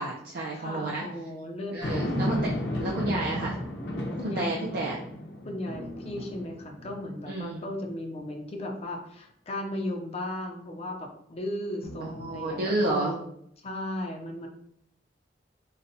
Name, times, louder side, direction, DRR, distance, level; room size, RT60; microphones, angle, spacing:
voice 1, 0.0-1.0 1.7-2.5 2.8-3.6 4.4-5.0 7.3-7.6 12.0-13.1, right 2 dB, 60° right, -2 dB, 0.4 m, -30 dB
voice 2, 0.5-1.8 2.3-2.5 4.1-4.6 5.4-13.3 13.6-14.5, left 1 dB, 35° left, 2 dB, 0.6 m, -36 dB
sound 1, 1.8-7.3 7.9-8.0 11.8-12.9, left 1 dB, 80° left, 0.7 m, -34 dB
4.0 x 2.2 x 2.6 m, 0.71 s
head